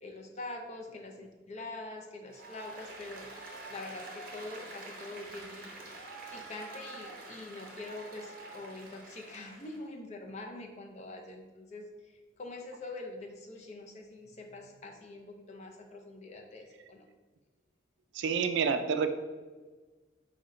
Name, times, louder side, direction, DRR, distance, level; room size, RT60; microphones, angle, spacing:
voice 1, 0.0-3.3 3.7-5.7 6.3-11.9 12.4-17.1, left 2 dB, 35° left, 2 dB, 0.4 m, -44 dB
Applause, 2.3-9.8, right 2 dB, 50° right, 0.8 m, -47 dB
voice 2, 18.1-19.1, right 6 dB, 70° right, 9 dB, 0.3 m, -28 dB
4.7 x 2.1 x 3.7 m, 1.3 s
head